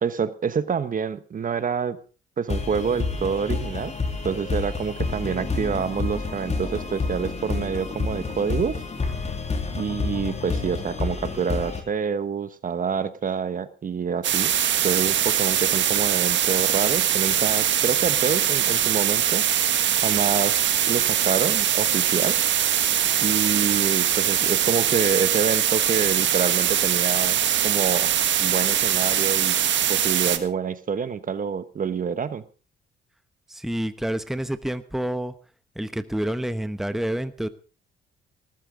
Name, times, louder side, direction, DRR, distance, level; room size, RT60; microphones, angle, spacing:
voice 1, 0.0-2.0 2.4-3.9 4.2-8.8 9.7-14.5 14.8-19.4 20.0-22.4 23.2-28.1 28.4-29.5 29.9-32.4, right 6 dB, 45° right, 13 dB, 1.1 m, -27 dB
sound 1, 2.5-11.8, left 4 dB, 35° left, 3.3 m, -29 dB
sound 2, 14.2-30.4, right 10 dB, 65° right, 1.5 m, -22 dB
voice 2, 33.5-35.4 35.7-37.5, right 1 dB, ahead, 11 dB, 1.0 m, -28 dB
19.0 x 13.5 x 3.8 m, 0.36 s
cardioid pair, 90°, 20 cm